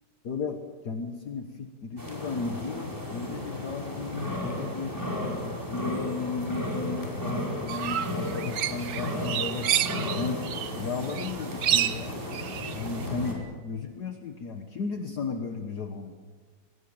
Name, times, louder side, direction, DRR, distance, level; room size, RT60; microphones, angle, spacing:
voice 1, 0.2-9.7 10.1-10.4 10.7-12.2 12.7-16.1, left 4 dB, 55° left, 5 dB, 1.8 m, -35 dB
sound 1, 2.0-13.3, left 1 dB, 10° right, 5.2 m, -34 dB
sound 2, 5.2-5.4 6.2-6.4 7.2-7.4 8.2-8.4 9.2-9.4 10.2-10.4 11.2-11.4 12.2-12.4 13.2-13.4, left 1 dB, 40° right, 5.0 m, -53 dB
sound 3, 7.7-10.8 11.0-13.0, right 10 dB, 65° right, 1.5 m, -29 dB
23.0 x 20.0 x 8.9 m, 1.5 s
omnidirectional pair, 2.1 m